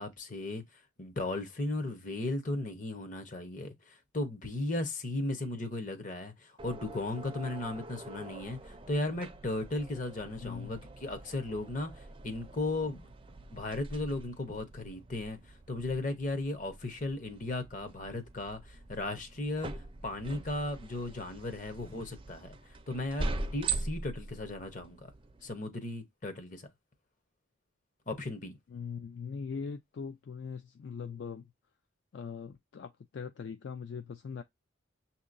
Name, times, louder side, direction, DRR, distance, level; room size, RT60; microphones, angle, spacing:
voice 1, 0.0-13.1 13.5-25.1 25.4-26.7 28.1-28.5, left 2 dB, 40° left, 0.8 m, -36 dB
sound 1, 6.6-25.5, right 3 dB, 25° right, 0.4 m, -43 dB
voice 2, 10.4-10.8 28.7-31.5 32.1-34.4, left 6 dB, 60° left, 0.3 m, -41 dB
6.5 x 2.8 x 2.5 m
head